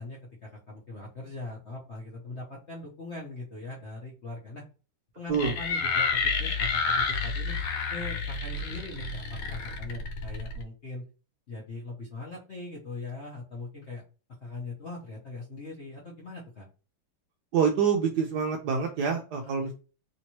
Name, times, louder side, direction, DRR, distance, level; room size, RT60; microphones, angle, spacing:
voice 1, 0.0-4.6 5.1-7.5 7.9-11.0 11.5-14.0 14.4-16.7 19.4-19.7, left 2 dB, 50° left, -3 dB, 0.8 m, -41 dB
sound 1, 5.3-10.6, left 4 dB, 85° left, 1.5 m, -30 dB
voice 2, 17.5-19.7, right 6 dB, 75° right, 3 dB, 1.0 m, -26 dB
3.5 x 2.9 x 2.9 m, 0.34 s
omnidirectional pair, 2.2 m